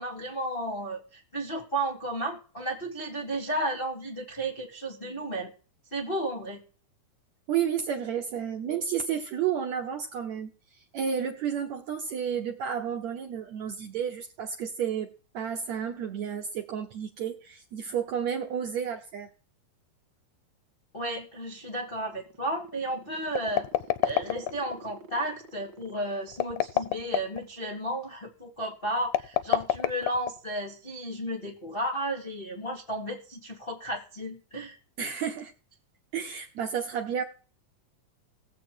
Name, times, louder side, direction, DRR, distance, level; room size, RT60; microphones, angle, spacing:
voice 1, 0.0-5.5 5.9-6.6 20.9-23.7 24.0-34.8, right 1 dB, 35° left, -1 dB, 0.8 m, -33 dB
voice 2, 7.5-19.3 35.0-35.5 36.1-37.2, right 8 dB, 70° right, 4 dB, 1.7 m, -31 dB
sound 1, 21.3-27.9, right 2 dB, 40° right, 2.3 m, -50 dB
sound 2, 23.3-24.8 26.3-27.4 29.1-30.6, left 13 dB, 80° left, 1.8 m, -27 dB
18.0 x 7.7 x 4.6 m, 0.40 s
omnidirectional pair, 4.2 m